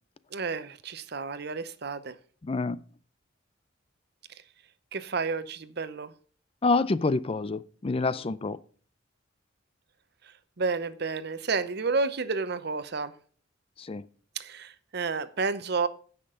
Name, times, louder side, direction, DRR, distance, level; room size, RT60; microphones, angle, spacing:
voice 1, 0.3-2.2 4.9-6.1 8.1-8.3 10.6-13.1 14.4-15.9, right 4 dB, 55° right, 0.8 m, -31 dB
voice 2, 2.4-2.8 6.6-8.6 13.8-14.0, left 3 dB, 30° left, 0.4 m, -27 dB
16.5 x 5.9 x 3.8 m
head